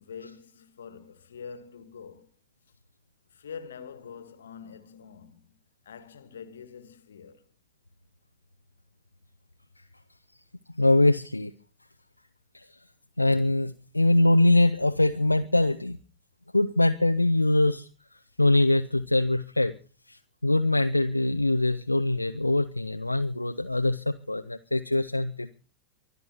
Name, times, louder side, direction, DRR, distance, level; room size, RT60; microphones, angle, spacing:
voice 1, 0.0-2.3 3.3-5.6 5.8-7.4, left 6 dB, 65° left, 1.7 m, -45 dB
voice 2, 10.8-11.5 12.5-12.7 13.2-16.0 16.5-17.9 18.4-19.7 20.1-25.5, left 2 dB, 85° left, 0.7 m, -23 dB
24.5 x 11.0 x 4.3 m
figure-of-eight pair, 90°, 0 cm